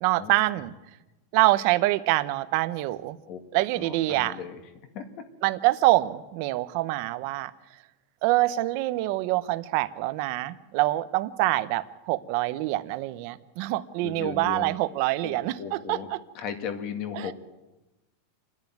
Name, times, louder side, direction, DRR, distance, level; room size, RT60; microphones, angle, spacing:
voice 1, 0.0-0.7 1.3-3.2 3.5-4.4 5.4-7.5 8.2-16.0 17.1-17.3, right 18 dB, 45° right, 13 dB, 0.8 m, -25 dB
voice 2, 3.3-4.6 4.9-5.2 14.0-16.1 16.3-17.3, left 7 dB, 35° left, 7 dB, 2.0 m, -37 dB
28.0 x 10.5 x 9.3 m, 1.1 s
supercardioid pair, 170°, 0 cm